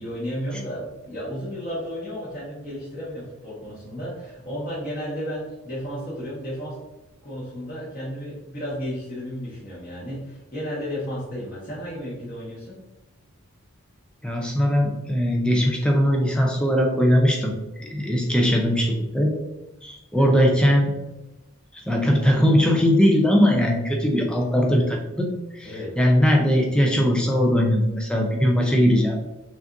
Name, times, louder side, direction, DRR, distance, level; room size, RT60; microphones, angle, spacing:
voice 1, 0.0-6.8 7.2-12.8 20.1-20.4 24.7-24.8 25.6-25.9, equal, 40° left, -9 dB, 1.2 m, -33 dB
voice 2, 14.2-17.5 17.8-19.4 19.8-20.9 21.7-25.7 26.0-29.2, equal, 5° left, 0 dB, 0.4 m, -20 dB
5.9 x 2.5 x 2.6 m, 0.99 s
head